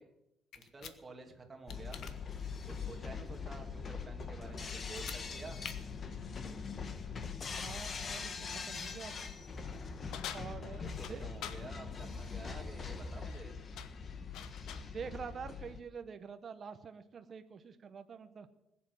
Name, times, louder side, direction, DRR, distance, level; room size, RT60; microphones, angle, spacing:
sound 1, 0.5-1.0 1.7-2.1 4.8-5.2 5.6-5.7, left 8 dB, 65° left, 1.3 m, -46 dB
voice 1, 0.6-2.0 2.7-5.6 10.6-10.9 11.2-13.5, right 3 dB, 20° right, 1 dB, 2.4 m, -50 dB
sound 2, 1.7-15.8, left 5 dB, 40° left, 1.3 m, -42 dB
voice 2, 7.6-9.1 10.3-11.3 14.8-18.5, right 6 dB, 40° right, 8 dB, 0.9 m, -46 dB
sound 3, 10.1-11.7 13.1-13.4 13.8-14.9, left 10 dB, 90° left, 1.0 m, -46 dB
20.5 x 7.6 x 7.6 m, 0.88 s
cardioid pair, 140°, 0 cm